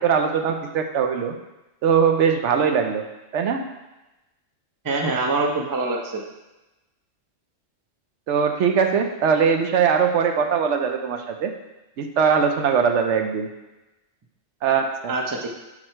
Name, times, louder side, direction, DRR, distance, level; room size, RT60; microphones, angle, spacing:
voice 1, 0.0-1.4 1.8-3.0 3.3-3.6 8.3-11.5 12.0-13.5 14.6-15.1, right 6 dB, 75° right, 5 dB, 0.9 m, -21 dB
voice 2, 4.8-6.2 15.1-15.5, right 3 dB, 25° right, 1 dB, 0.5 m, -24 dB
6.1 x 4.2 x 4.4 m, 1.0 s
omnidirectional pair, 1.3 m